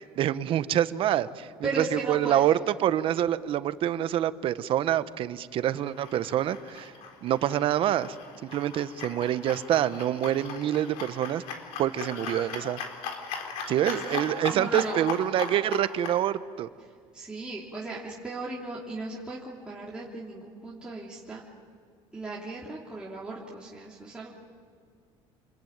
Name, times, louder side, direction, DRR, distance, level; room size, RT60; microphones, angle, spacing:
voice 1, 0.0-2.5 2.8-6.9 7.2-8.2 8.4-11.4 11.8-12.8 13.7-16.7, right 11 dB, 55° right, 14 dB, 1.0 m, -26 dB
voice 2, 1.6-2.4 13.9-14.3 14.5-15.0 17.1-21.4 22.1-24.3, right 3 dB, 10° right, -6 dB, 3.3 m, -36 dB
sound 1, 5.7-16.2, left 6 dB, 80° left, 3.8 m, -39 dB
27.5 x 22.0 x 9.4 m, 2.1 s
cardioid pair, 120°, 11 cm